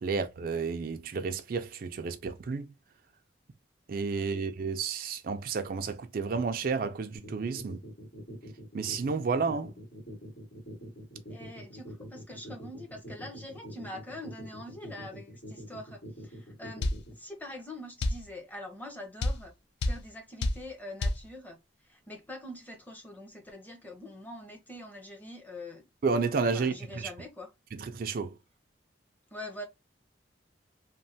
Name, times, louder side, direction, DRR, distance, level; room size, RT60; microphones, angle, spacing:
voice 1, 0.0-2.7 3.9-7.8 8.7-9.7 26.0-27.1 27.9-28.4, right 5 dB, 50° right, 0.4 m, -31 dB
sound 1, 7.1-17.1, equal, 80° left, 1.8 m, -45 dB
voice 2, 11.3-19.5 19.8-25.9 26.5-27.5 29.3-29.7, left 1 dB, 10° left, 0.7 m, -44 dB
sound 2, 16.8-17.0 18.0-18.2 19.2-19.4 19.8-20.0 20.4-20.6 21.0-21.2, left 2 dB, 65° left, 0.5 m, -27 dB
3.1 x 2.1 x 2.6 m
head